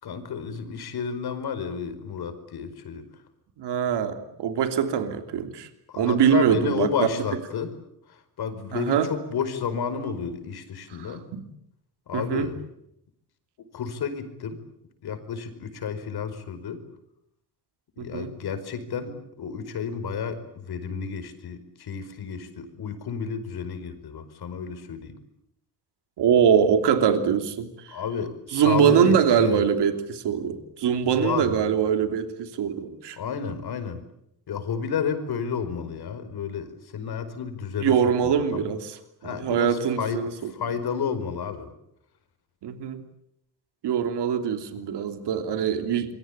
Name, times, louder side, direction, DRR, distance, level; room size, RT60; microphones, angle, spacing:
voice 1, 0.0-3.0 5.9-7.7 8.1-11.3 12.1-12.6 13.7-14.6 15.0-16.8 18.0-25.2 27.9-29.6 31.1-31.7 33.2-34.0 34.5-37.9 38.2-38.7 39.2-41.7, left 6 dB, 65° left, 9 dB, 5.1 m, -31 dB
voice 2, 3.6-5.7 6.0-6.9 8.7-9.1 11.0-11.5 12.1-12.5 18.0-18.3 26.2-27.7 28.5-33.2 37.8-39.0 39.2-40.5 42.6-43.0 43.8-46.1, right 8 dB, 85° right, 8 dB, 3.0 m, -23 dB
28.0 x 23.5 x 8.6 m, 0.77 s
cardioid pair, 125°, 40 cm